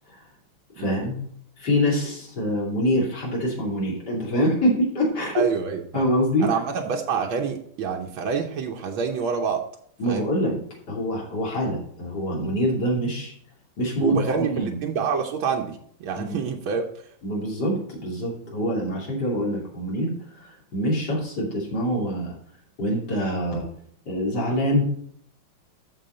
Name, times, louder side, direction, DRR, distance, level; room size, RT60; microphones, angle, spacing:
voice 1, 0.8-1.2 1.6-5.5 5.9-6.5 10.0-10.6 10.9-13.3 13.8-14.8 16.1-16.4 17.2-22.3 22.8-23.6 24.1-24.8, equal, 55° left, -3 dB, 3.3 m, -25 dB
voice 2, 5.3-6.0 6.4-9.6 10.0-10.3 14.0-16.8, right 6 dB, 85° right, 2 dB, 1.7 m, -27 dB
13.0 x 4.6 x 3.9 m, 0.64 s
omnidirectional pair, 2.2 m